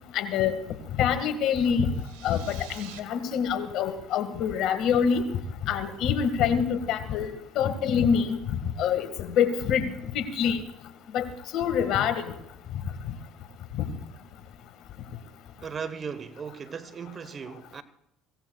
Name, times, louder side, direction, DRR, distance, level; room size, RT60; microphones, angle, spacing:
voice 1, 0.1-0.6 1.0-1.9 2.2-5.3 5.6-10.6 11.1-11.3 11.5-12.3, left 7 dB, 65° left, 1.8 m, -26 dB
sound 1, 1.9-3.0, right 10 dB, 85° right, 1.5 m, -47 dB
voice 2, 15.6-17.8, right 6 dB, 35° right, 1.1 m, -37 dB
24.0 x 17.5 x 2.3 m
supercardioid pair, 85°, 0 cm